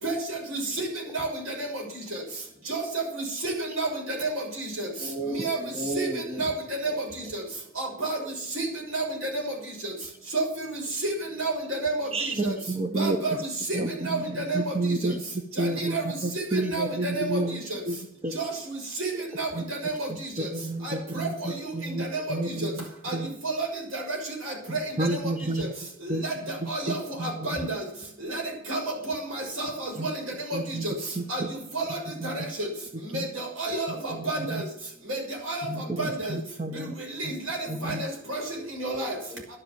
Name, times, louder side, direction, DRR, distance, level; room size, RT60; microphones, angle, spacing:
voice 1, 0.0-0.9 1.1-1.8 2.1-2.2 2.7-4.9 5.3-5.6 5.9-6.9 7.3-7.4 7.8-9.5 9.8-9.9 10.3-12.1 12.4-12.5 12.9-14.7 15.6-17.8 18.3-19.1 19.4-20.5 20.8-21.6 21.8-22.4 22.6-22.7 23.0-23.2 23.4-24.2 24.4-24.8 25.1-25.2 25.6-25.7 26.0-27.8 28.2-28.4 28.7-30.9 31.3-31.4 31.7-32.0 32.2-32.7 33.1-34.6 35.1-35.2 35.5-36.4 37.1-38.4 38.7-39.1, right 2 dB, 90° right, 1 dB, 6.3 m, -31 dB
voice 2, 4.8-6.5 6.9-7.0 8.2-8.3 17.4-17.5 25.4-25.5 33.9-34.1 35.9-36.1 37.6-37.9 38.5-39.5, right 1 dB, 5° right, 3 dB, 2.0 m, -36 dB
voice 3, 12.1-13.2 13.7-15.2 15.6-18.4 19.5-19.6 20.1-22.8 23.1-23.3 24.7-25.7 26.1-27.5 30.0-30.1 30.5-30.9 31.2-31.5 32.2-32.3 33.1-33.3 34.1-34.6 35.7-36.9 37.2-37.3 37.7-38.0, right 2 dB, 30° right, 6 dB, 0.9 m, -31 dB
11.5 x 11.0 x 7.5 m, 0.74 s
head